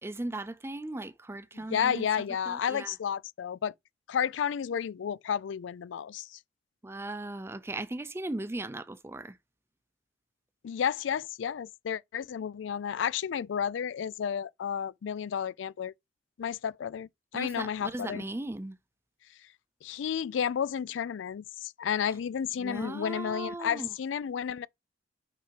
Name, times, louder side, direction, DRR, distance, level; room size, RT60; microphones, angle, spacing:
voice 1, 0.0-2.1 2.5-2.9 6.8-9.4 17.3-18.8 22.6-23.9, right 2 dB, 15° right, 0.4 m, -37 dB
voice 2, 1.7-3.7 4.1-6.4 10.6-15.9 16.4-18.2 19.8-24.7, left 8 dB, 90° left, 0.4 m, -32 dB
5.7 x 4.7 x 5.8 m
head